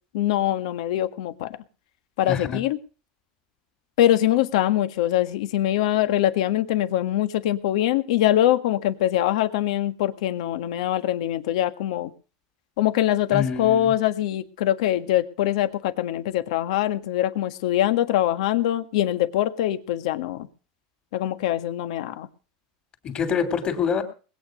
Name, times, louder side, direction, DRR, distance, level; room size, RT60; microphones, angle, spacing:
voice 1, 0.1-1.6 2.2-2.8 4.0-12.1 12.8-20.5 21.1-22.3, left 12 dB, 75° left, 1.6 m, -23 dB
voice 2, 2.3-2.6 13.3-13.9 23.0-24.0, left 6 dB, 30° left, 3.5 m, -26 dB
21.0 x 9.0 x 5.2 m
supercardioid pair, 150°, 4 cm